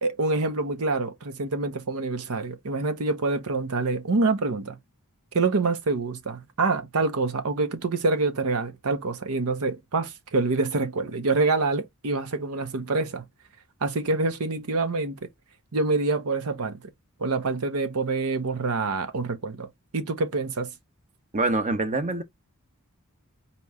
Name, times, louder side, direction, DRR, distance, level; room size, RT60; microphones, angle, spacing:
voice 1, 0.0-4.8 5.3-13.2 13.8-15.3 15.7-16.8 17.2-20.7, right 3 dB, 75° right, 0.8 m, -26 dB
voice 2, 21.3-22.2, right 2 dB, 35° right, 0.8 m, -25 dB
4.2 x 3.0 x 3.5 m
head